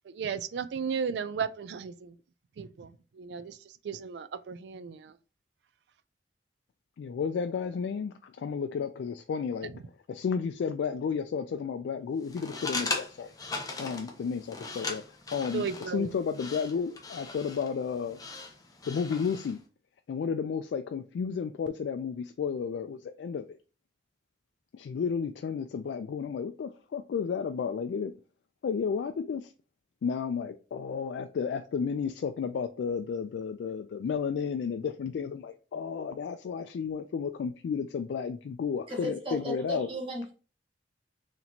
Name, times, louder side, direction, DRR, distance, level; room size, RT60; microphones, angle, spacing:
voice 1, 0.1-2.1 2.6-3.6 3.8-5.1 15.5-16.1, right 6 dB, 70° right, 0.3 m, -35 dB
voice 2, 7.0-9.7 10.1-13.3 13.8-15.0 15.3-18.2 18.9-19.6 20.1-23.6 24.7-28.1 28.6-29.5 30.0-39.9, left 6 dB, 80° left, 0.3 m, -32 dB
sound 1, 12.2-19.6, left 3 dB, 20° left, 0.6 m, -39 dB
voice 3, 38.9-40.3, right 1 dB, 30° right, 1.1 m, -35 dB
4.2 x 2.9 x 2.7 m
head